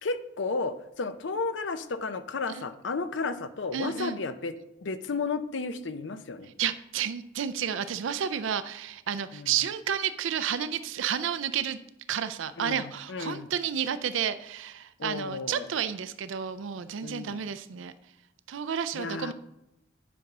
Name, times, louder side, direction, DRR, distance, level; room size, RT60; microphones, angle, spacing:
voice 1, 0.0-4.5 4.8-6.5 9.3-9.5 12.6-13.5 15.0-15.7 17.0-17.4 18.9-19.3, left 4 dB, 65° left, 11 dB, 0.6 m, -33 dB
voice 2, 3.7-4.2 6.6-11.8 12.1-17.9 18.5-19.3, right 8 dB, 75° right, 13 dB, 0.4 m, -31 dB
8.5 x 5.3 x 5.9 m, 0.86 s
head